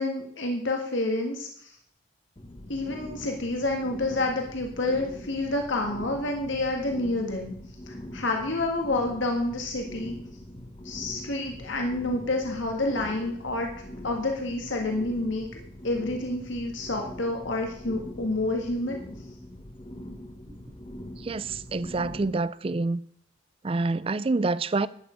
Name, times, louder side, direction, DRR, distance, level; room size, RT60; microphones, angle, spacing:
voice 1, 0.0-1.7 2.7-7.5 7.9-10.2 10.8-13.7 14.0-15.5 15.8-19.0, left 2 dB, 80° left, 1.7 m, -29 dB
sound 1, 2.4-22.4, left 1 dB, 25° left, 1.1 m, -42 dB
voice 2, 21.3-23.0 23.6-24.9, right 3 dB, 30° right, 0.4 m, -27 dB
12.5 x 9.2 x 5.1 m
head